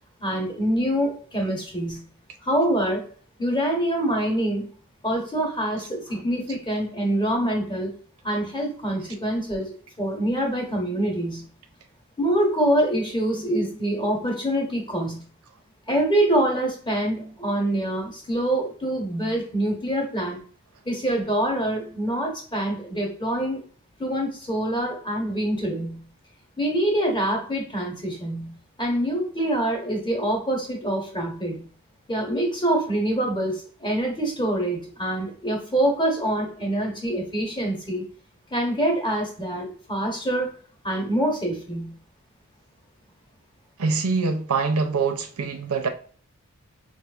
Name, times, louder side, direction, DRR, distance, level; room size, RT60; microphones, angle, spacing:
voice 1, 0.2-2.1 2.4-3.1 3.4-4.7 5.0-7.9 8.2-9.7 10.0-11.5 12.2-15.2 15.9-20.4 20.8-23.6 24.0-26.1 26.6-31.7 32.1-38.0 38.5-40.5 40.8-42.0, right 1 dB, 20° left, 1.0 m, -25 dB
voice 2, 43.8-45.9, right 4 dB, 80° right, 0.5 m, -24 dB
4.3 x 2.4 x 2.4 m
head